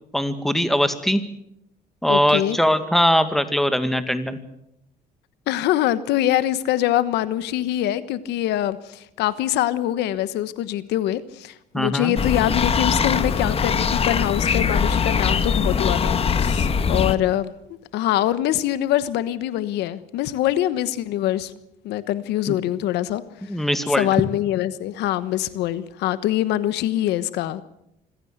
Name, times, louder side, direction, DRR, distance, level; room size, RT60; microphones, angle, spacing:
voice 1, 0.1-1.2 2.0-4.4 11.7-12.2 22.5-22.6 23.5-24.1, equal, ahead, 10 dB, 2.1 m, -21 dB
voice 2, 2.1-2.6 5.5-17.5 17.9-21.5 21.8-23.2 23.6-23.7 24.0-27.6, left 13 dB, 85° left, 14 dB, 1.2 m, -24 dB
sound 1, 12.2-17.2, left 6 dB, 35° left, 1.5 m, -21 dB
26.0 x 16.5 x 8.1 m, 0.80 s
cardioid pair, 110°, 17 cm